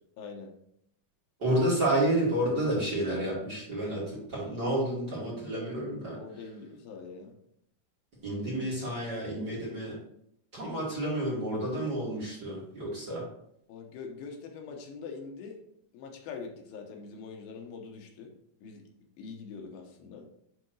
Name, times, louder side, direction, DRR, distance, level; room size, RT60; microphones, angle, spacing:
voice 1, 0.2-0.5 6.2-7.4 13.7-15.6 15.9-18.3 18.6-18.8 19.2-20.3, left 5 dB, 90° left, 2 dB, 2.9 m, -43 dB
voice 2, 1.4-6.2 8.2-9.9 10.5-13.2, right 1 dB, 30° right, -7 dB, 2.5 m, -30 dB
10.5 x 3.8 x 3.2 m, 0.72 s
omnidirectional pair, 4.1 m